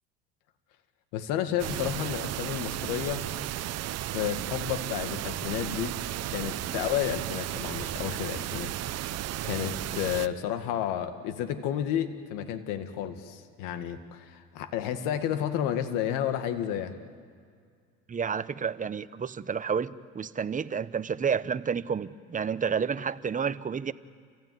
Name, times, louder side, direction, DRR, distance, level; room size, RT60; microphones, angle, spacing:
voice 1, 1.1-3.3 4.1-6.0 6.3-8.7 9.4-16.9, left 10 dB, 75° left, 8 dB, 1.9 m, -31 dB
sound 1, 1.6-10.3, right 14 dB, 50° right, 0.8 m, -34 dB
voice 2, 18.1-23.9, right 6 dB, 25° right, 14 dB, 0.9 m, -30 dB
29.0 x 16.0 x 9.4 m, 2.1 s
supercardioid pair, 85°, 32 cm